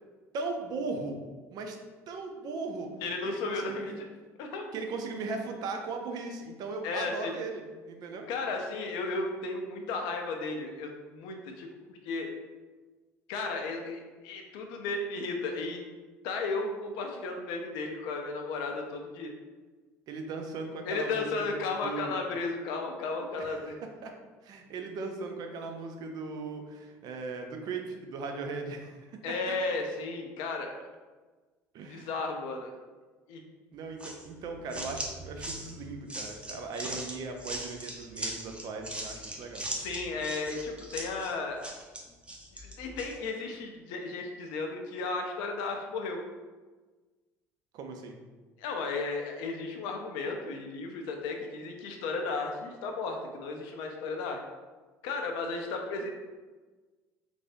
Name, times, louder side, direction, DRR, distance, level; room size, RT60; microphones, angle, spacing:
voice 1, 0.3-1.2 1.5-1.8 2.1-2.9 3.2-4.0 4.7-8.3 20.1-21.5 21.8-22.2 23.4-24.1 24.4-29.2 29.5-29.8 31.7-32.1 33.7-39.6 47.7-48.2, right 3 dB, 55° right, 4 dB, 0.5 m, -38 dB
voice 2, 3.0-3.9 4.4-4.6 6.8-7.3 8.3-12.3 13.3-15.8 16.2-19.3 20.9-23.8 29.2-30.7 31.9-32.7 33.3-33.4 39.7-41.6 42.5-46.2 48.6-54.4 55.0-56.1, left 3 dB, 70° left, 3 dB, 0.4 m, -34 dB
sound 1, 34.0-43.2, right 1 dB, 15° right, 0.6 m, -40 dB
3.2 x 2.6 x 2.6 m, 1.3 s
hypercardioid pair, 70°, 8 cm